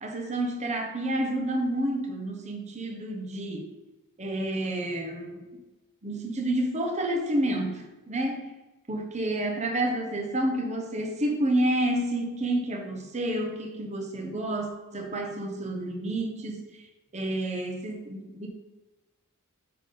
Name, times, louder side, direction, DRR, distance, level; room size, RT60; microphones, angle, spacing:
voice 1, 0.0-3.7 4.2-5.4 6.0-8.4 8.9-16.6 17.1-18.5, right 1 dB, 30° right, 2 dB, 0.9 m, -29 dB
8.0 x 3.8 x 5.2 m, 1.1 s
head